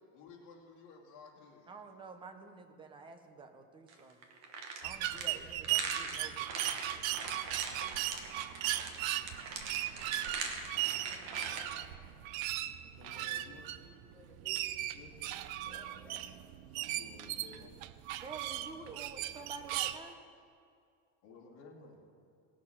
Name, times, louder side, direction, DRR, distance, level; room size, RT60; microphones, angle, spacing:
voice 1, 0.1-1.7 10.2-10.7 12.8-13.7 14.9-15.1 16.7-17.8 18.6-18.9 19.2-19.4 21.2-22.0, left 4 dB, 50° left, -1 dB, 2.3 m, -55 dB
voice 2, 1.7-4.2 4.8-6.5 18.2-20.1, right 4 dB, 15° right, 6 dB, 0.5 m, -49 dB
sound 1, 3.9-11.6, right 4 dB, 40° right, 1.3 m, -41 dB
sound 2, 4.8-20.0, right 14 dB, 90° right, 0.7 m, -37 dB
voice 3, 10.5-12.0 13.0-15.1 15.6-16.4, left 1 dB, 5° left, -7 dB, 2.5 m, -59 dB
18.5 x 6.5 x 5.8 m, 2.4 s
cardioid pair, 175°, 39 cm